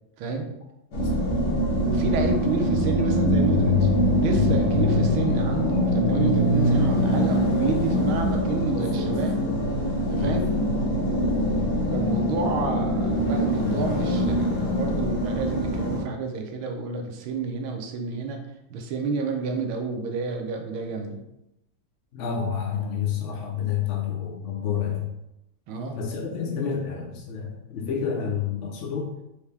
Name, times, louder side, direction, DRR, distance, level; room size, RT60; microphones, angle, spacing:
voice 1, 0.2-0.5 1.8-3.9 4.2-9.4 10.1-10.5 11.9-18.4 18.7-21.2 25.7-26.0, right 4 dB, 80° right, 3 dB, 1.5 m, -29 dB
sound 1, 0.9-16.0, equal, 55° left, 1.5 m, -23 dB
voice 2, 8.7-9.7 10.1-10.5 14.7-14.9 22.1-25.1 25.9-29.2, left 7 dB, 75° left, -1 dB, 0.6 m, -29 dB
4.7 x 2.8 x 3.3 m, 0.87 s
omnidirectional pair, 2.3 m